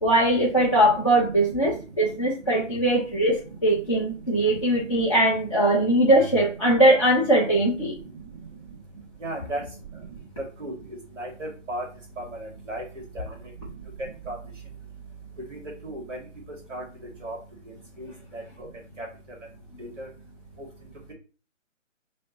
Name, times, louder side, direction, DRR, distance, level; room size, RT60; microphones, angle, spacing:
voice 1, 0.0-8.0, right 1 dB, 25° left, -6 dB, 0.7 m, -21 dB
voice 2, 9.2-9.6 10.6-10.7 11.2-11.8 12.7-12.8 13.2-13.3 14.3-14.4 15.8-16.0 16.7-16.8 17.2-17.4, right 1 dB, 10° right, -1 dB, 1.8 m, -32 dB
5.1 x 2.1 x 4.2 m, 0.34 s
figure-of-eight pair, 155°, 39 cm